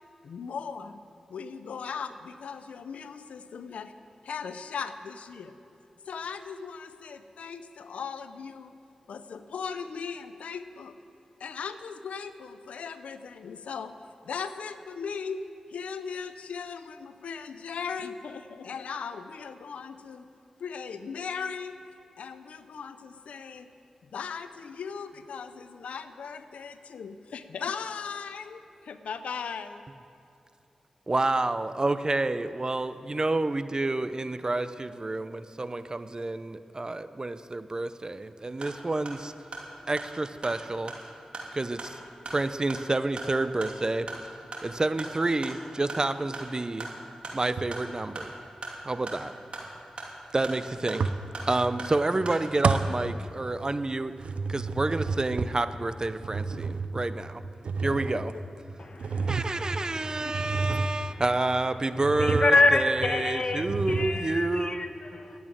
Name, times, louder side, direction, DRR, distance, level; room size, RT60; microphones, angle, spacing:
voice 1, 0.2-1.0 1.3-3.9 4.2-5.6 6.1-8.7 9.1-11.0 11.4-13.9 14.2-15.4 15.7-20.2 20.6-21.8 22.2-23.7 24.1-29.8 57.8-58.2 60.2-60.3 63.9-64.0 64.7-64.9, left 6 dB, 90° left, 10 dB, 0.5 m, -38 dB
voice 2, 31.1-39.3 39.9-40.9 41.5-42.0 42.3-44.1 44.6-46.9 47.3-48.3 48.8-49.3 50.3-51.0 51.5-57.4 57.8-58.3 59.3-64.9, right 2 dB, 35° right, 12 dB, 0.6 m, -29 dB
sound 1, 38.6-52.9, right 2 dB, 60° right, 2.8 m, -42 dB
sound 2, 47.6-48.0 51.0-51.9 52.1-53.8 54.1-61.4 61.9-62.8 63.0-63.2 63.5-64.5, right 4 dB, 75° right, 0.5 m, -31 dB
voice 3, 58.8-61.2 62.2-65.4, left 2 dB, 50° left, 7 dB, 1.1 m, -28 dB
12.5 x 8.7 x 9.1 m, 2.8 s
cardioid pair, 45°, 2 cm